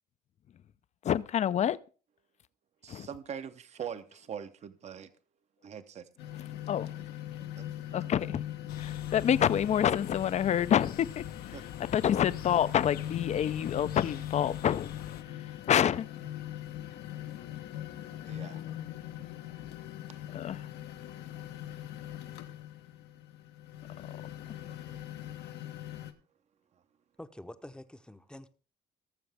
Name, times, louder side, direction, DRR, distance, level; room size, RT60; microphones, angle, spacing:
voice 1, 1.0-1.8 2.9-3.1 6.7-6.9 7.9-8.4 8.8-11.5 11.9-14.9 15.3-16.1 20.3-20.7, left 9 dB, 45° left, 0.5 m, -28 dB
voice 2, 2.8-5.1 5.6-6.1 7.6-8.0 11.5-11.6 18.3-18.6, right 8 dB, 40° right, 0.8 m, -42 dB
sound 1, 6.2-26.1, left 12 dB, 85° left, 1.2 m, -41 dB
sound 2, 8.7-15.2, left 10 dB, 65° left, 0.8 m, -45 dB
voice 3, 27.2-28.5, left 1 dB, 5° left, 0.8 m, -47 dB
18.5 x 7.0 x 3.5 m
cardioid pair, 110°, 17 cm